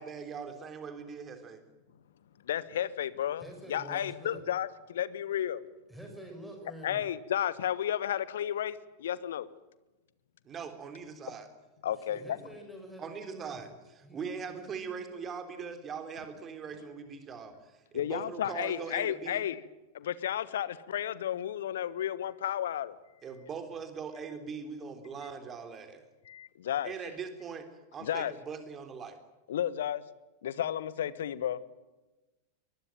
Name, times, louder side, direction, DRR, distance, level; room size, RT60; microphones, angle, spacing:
voice 1, 0.0-1.6 10.5-11.5 13.0-13.7 14.1-19.4 23.2-26.0 26.8-27.7 27.9-29.2, right 6 dB, 25° right, 3.7 m, -41 dB
voice 2, 2.4-3.4 3.7-5.7 6.8-9.5 11.8-12.2 17.9-19.6 19.9-23.0 26.2-26.9 28.0-28.3 29.5-30.0 30.4-31.6, left 10 dB, 60° left, 1.3 m, -32 dB
voice 3, 3.4-4.4 5.9-7.1 12.0-13.6 14.0-15.1, right 1 dB, 5° right, 6.0 m, -47 dB
23.5 x 21.0 x 9.1 m
figure-of-eight pair, 90°, 0 cm